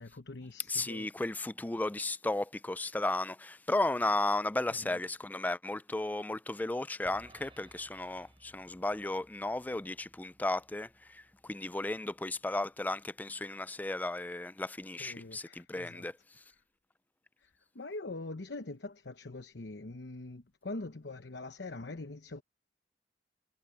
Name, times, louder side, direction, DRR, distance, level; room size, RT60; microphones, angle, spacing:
voice 1, 0.0-1.1 4.7-5.0 15.0-16.1 17.4-22.4, left 2 dB, 70° left, 1.0 m, -43 dB
voice 2, 0.7-16.4, left 2 dB, 10° left, 0.3 m, -34 dB
sound 1, 7.0-13.4, right 1 dB, 30° right, 4.9 m, -62 dB
head